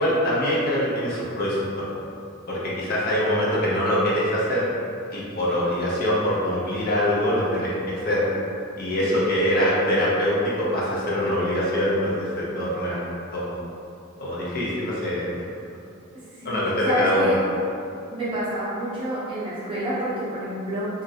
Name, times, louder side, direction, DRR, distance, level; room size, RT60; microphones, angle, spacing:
voice 1, 0.0-1.9 2.5-4.6 5.1-8.2 8.8-13.0 13.3-13.6 14.2-15.5 16.4-17.3, equal, 50° left, -7 dB, 0.6 m, -24 dB
voice 2, 16.4-17.4 18.1-20.9, right 1 dB, 25° right, -10 dB, 0.6 m, -28 dB
3.0 x 2.4 x 2.7 m, 2.6 s
head